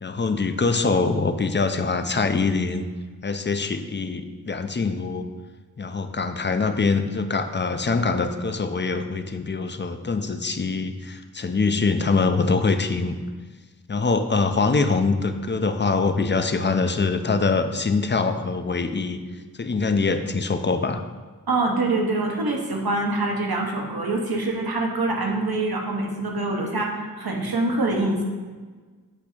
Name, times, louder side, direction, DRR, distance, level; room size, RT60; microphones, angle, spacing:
voice 1, 0.0-2.9 3.2-5.3 5.8-13.2 13.9-19.2 19.6-21.0, left 4 dB, 30° left, 8 dB, 0.4 m, -24 dB
voice 2, 21.5-28.2, right 2 dB, 75° right, 0 dB, 1.1 m, -25 dB
8.3 x 2.8 x 5.0 m, 1.4 s
wide cardioid pair, 60°, 37 cm